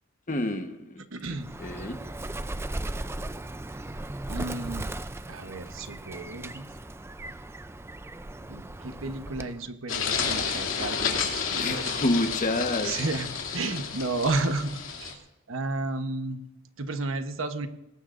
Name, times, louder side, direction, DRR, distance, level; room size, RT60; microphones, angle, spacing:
voice 1, 0.3-1.0 1.3-2.0 11.6-13.0, left 1 dB, 40° left, 6 dB, 1.2 m, -29 dB
voice 2, 1.1-1.5 4.3-4.9 5.3-6.7 8.5-12.0 12.8-13.3 13.5-15.2 15.5-16.4 16.8-17.7, right 3 dB, 75° right, 8 dB, 1.1 m, -32 dB
Bird, 1.4-9.7, right 1 dB, 15° right, 0.5 m, -37 dB
sound 1, 9.9-15.1, left 6 dB, 70° left, 2.7 m, -30 dB
21.5 x 18.5 x 2.6 m, 1.0 s
head